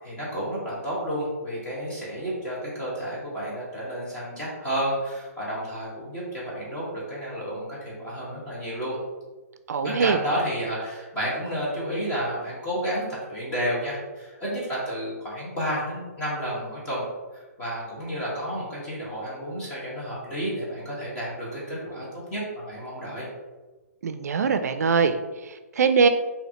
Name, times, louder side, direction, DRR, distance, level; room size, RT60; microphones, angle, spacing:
voice 1, 0.0-9.0 9.8-17.0 17.3-22.0 22.3-23.3, equal, 15° left, -8 dB, 1.4 m, -31 dB
voice 2, 9.7-10.2 24.0-26.1, right 5 dB, 75° right, 9 dB, 0.4 m, -22 dB
4.9 x 2.8 x 2.9 m, 1.2 s
hypercardioid pair, 160°, 9 cm